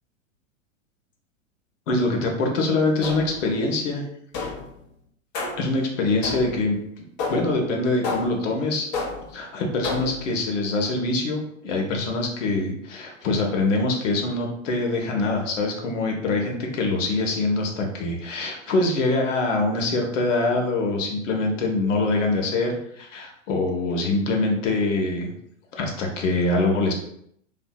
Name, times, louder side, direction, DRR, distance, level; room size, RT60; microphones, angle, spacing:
voice 1, 1.9-4.0 5.6-7.0 7.3-8.9 9.3-25.3 25.7-26.9, left 2 dB, 70° left, 1 dB, 0.8 m, -24 dB
sound 1, 3.0-3.5 4.3-4.8 5.3-5.8 6.2-6.7 7.2-7.6 8.0-8.5 8.9-9.4 9.8-10.3, left 3 dB, 40° left, 0.8 m, -31 dB
2.6 x 2.5 x 2.2 m, 0.71 s
hypercardioid pair, 95°, 39 cm